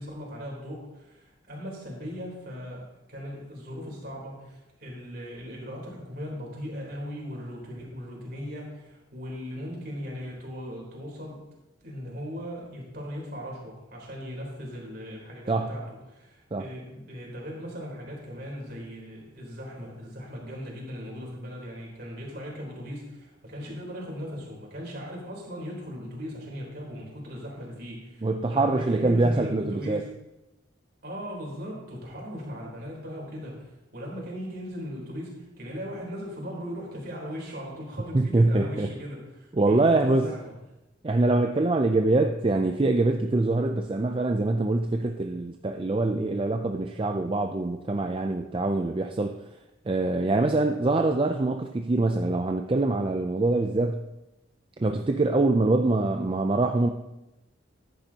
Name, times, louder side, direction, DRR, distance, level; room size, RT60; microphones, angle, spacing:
voice 1, 0.0-11.4 11.8-30.1 31.0-40.5, equal, 50° right, -2 dB, 3.7 m, -38 dB
voice 2, 28.2-30.0 38.1-38.9 39.5-40.3 41.0-49.4 49.9-54.0 54.8-56.9, right 2 dB, 25° right, 5 dB, 0.4 m, -24 dB
14.0 x 10.5 x 2.9 m, 0.96 s
head